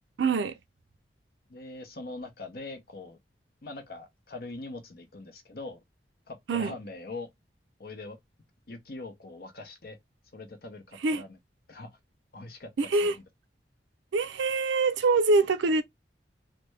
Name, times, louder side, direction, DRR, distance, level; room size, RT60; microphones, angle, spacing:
voice 1, 0.2-0.6 6.5-6.7 11.0-11.2 12.8-13.2 14.1-15.8, right 3 dB, 80° right, 0.4 m, -24 dB
voice 2, 1.5-3.2 3.6-5.8 6.3-7.3 7.8-8.2 8.7-10.0 10.3-11.4 11.7-11.9 12.3-12.9, left 2 dB, 55° left, 0.8 m, -42 dB
3.2 x 2.1 x 3.2 m
head